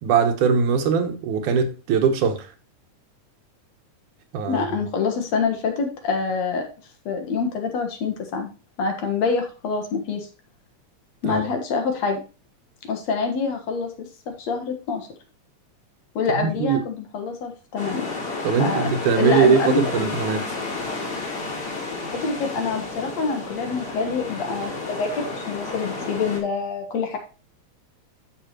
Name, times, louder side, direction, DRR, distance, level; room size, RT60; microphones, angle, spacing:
voice 1, 0.0-2.5 4.3-4.7 11.2-11.4 16.4-16.8 18.4-20.5, right 6 dB, 80° right, 2.7 m, -21 dB
voice 2, 4.5-6.6 7.1-8.5 8.8-10.3 11.2-12.2 12.8-15.1 16.2-18.1 18.6-18.9 19.2-20.1 22.1-27.2, left 5 dB, 65° left, 2.6 m, -26 dB
sound 1, 17.8-26.4, left 3 dB, 45° left, 4.2 m, -31 dB
11.5 x 6.3 x 3.0 m
omnidirectional pair, 3.5 m